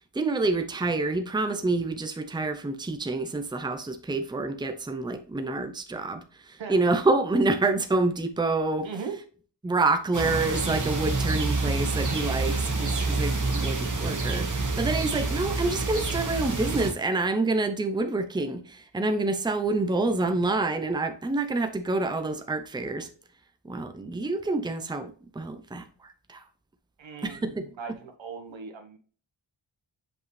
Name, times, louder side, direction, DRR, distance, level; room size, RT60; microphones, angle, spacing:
voice 1, 0.1-8.9 9.6-23.1 23.6-26.4 27.2-27.7, right 3 dB, 10° right, 0.6 m, -27 dB
voice 2, 8.8-9.2 27.0-29.0, right 5 dB, 85° right, 1.3 m, -38 dB
sound 1, 10.1-16.9, right 3 dB, 45° right, 1.5 m, -28 dB
7.4 x 5.4 x 3.2 m
wide cardioid pair, 130°, 44 cm